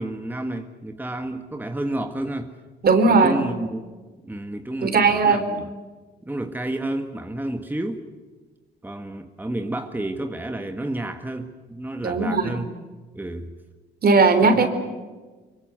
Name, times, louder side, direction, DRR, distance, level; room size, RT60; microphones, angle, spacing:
voice 1, 0.0-2.6 3.0-3.8 4.2-5.7 6.3-8.0 8.8-12.7 13.1-13.5 14.4-14.7, right 1 dB, 10° right, 6 dB, 1.7 m, -30 dB
voice 2, 2.8-3.4 4.8-5.5 12.0-12.6 14.0-14.7, right 4 dB, 50° right, 9 dB, 3.8 m, -18 dB
24.5 x 23.5 x 8.2 m, 1.3 s
cardioid pair, 90°, 20 cm